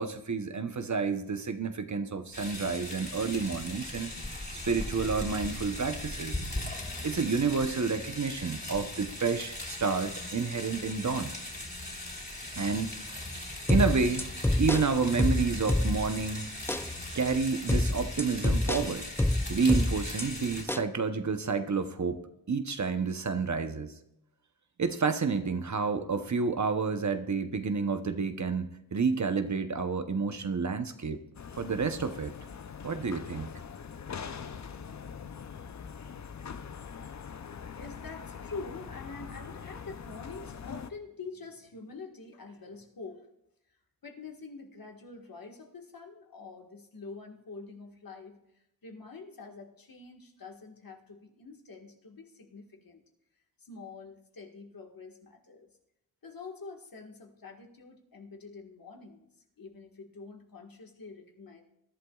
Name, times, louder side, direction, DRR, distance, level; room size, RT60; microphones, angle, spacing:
voice 1, 0.0-4.1 4.5-6.4 7.0-11.3 12.5-13.3 13.7-14.3 14.6-16.6 17.1-19.1 19.5-22.2 22.5-24.0 24.8-31.2 31.5-32.3 32.8-33.5, right 5 dB, 50° right, 8 dB, 0.9 m, -30 dB
sound 1, 2.3-20.6, left 1 dB, 30° left, 3.4 m, -39 dB
sound 2, 13.7-16.2 16.7-16.9 17.7-20.2 20.7-20.9, left 1 dB, 5° left, 0.4 m, -27 dB
sound 3, 31.3-40.9, left 6 dB, 50° left, 0.6 m, -43 dB
voice 2, 37.6-43.3 44.0-53.0 53.6-55.8 56.2-59.3 59.6-61.6, left 4 dB, 65° left, 2 dB, 1.7 m, -46 dB
21.0 x 11.5 x 2.4 m, 0.83 s
cardioid pair, 45°, 37 cm